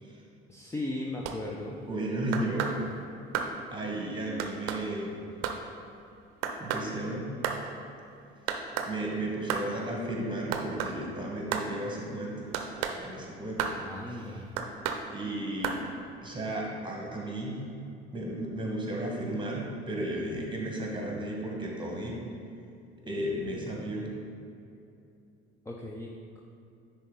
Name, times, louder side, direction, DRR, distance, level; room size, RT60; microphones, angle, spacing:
voice 1, 0.5-1.8 13.8-14.5 25.7-26.1 26.4-26.5, left 1 dB, 10° left, -1 dB, 0.6 m, -37 dB
sound 1, 1.2-1.4 2.3-2.8 3.3-3.5 4.4-4.8 5.4-5.6 6.4-6.9 7.4-7.6 8.5-8.9 9.5-9.7 10.5-11.0 11.5-11.7 12.5-13.0 13.6-13.8 14.6-15.0 15.6-15.8, right 8 dB, 55° right, 0.7 m, -31 dB
voice 2, 1.9-2.8 3.7-5.2 6.6-7.3 8.9-12.5 13.0-13.7 14.1-14.2 15.1-15.9 16.2-17.6 18.1-22.2 23.0-24.1, right 1 dB, 15° right, -1 dB, 1.6 m, -34 dB
10.0 x 3.8 x 3.9 m, 2.6 s
figure-of-eight pair, 60°, 32 cm